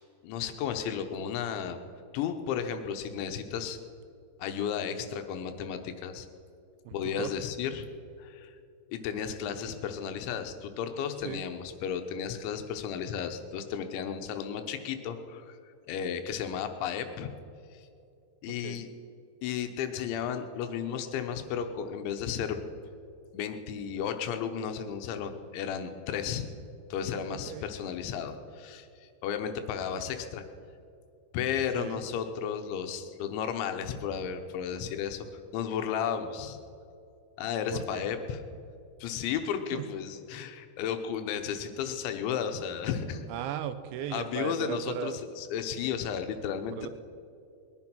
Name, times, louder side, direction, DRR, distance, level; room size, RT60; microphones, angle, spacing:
voice 1, 0.2-1.8 2.1-3.8 4.4-6.3 6.9-7.9 8.2-8.5 8.9-15.6 15.9-17.3 17.7-17.9 18.4-18.9 19.4-22.6 23.3-26.4 26.9-28.9 29.2-30.4 31.3-35.3 35.5-36.6 37.4-38.4 39.0-43.2 44.1-46.7, left 8 dB, 85° left, 7 dB, 3.2 m, -33 dB
voice 2, 6.9-7.4 11.2-11.4 18.5-18.8 27.3-27.7 31.7-32.0 37.7-38.1 39.7-39.9 43.3-45.2 46.7-46.9, right 10 dB, 85° right, 11 dB, 3.1 m, -37 dB
20.5 x 10.5 x 5.8 m, 2.5 s
omnidirectional pair, 5.4 m